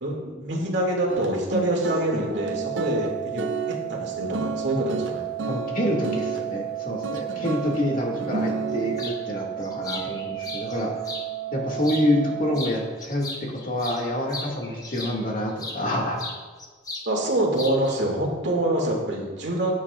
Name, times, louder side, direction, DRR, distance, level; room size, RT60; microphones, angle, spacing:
voice 1, 0.0-3.5 3.9-5.3 7.3-7.6 17.1-19.7, right 1 dB, 70° right, -1 dB, 2.3 m, -26 dB
sound 1, 1.1-6.5 7.0-7.8 8.1-9.1, right 2 dB, 85° right, 0.6 m, -31 dB
Organ, 2.3-13.3, right 13 dB, 25° right, 0.3 m, -33 dB
voice 2, 5.5-10.9 11.5-16.2, left 1 dB, 45° left, -2 dB, 2.0 m, -27 dB
sound 2, 9.0-9.2 9.6-11.3 11.8-12.3 12.5-15.8 16.2-17.1 17.3-18.0, left 2 dB, 20° left, 0.9 m, -37 dB
16.5 x 8.7 x 2.5 m, 1.4 s
head